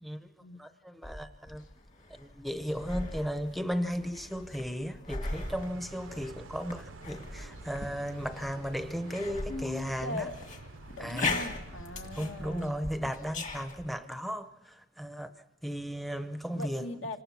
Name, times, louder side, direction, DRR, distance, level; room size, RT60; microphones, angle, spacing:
voice 1, 0.6-1.6 2.2-10.3 11.0-11.4 12.2-15.3 15.6-16.9, equal, ahead, 0.7 m, -35 dB
sound 1, 1.0-13.9, left 3 dB, 40° left, 2.1 m, -40 dB
sound 2, 5.3-12.7, right 3 dB, 70° right, 0.7 m, -49 dB
voice 2, 9.5-10.3 10.9-12.8 16.5-17.2, left 2 dB, 70° left, 2.0 m, -39 dB
26.5 x 19.0 x 5.9 m
head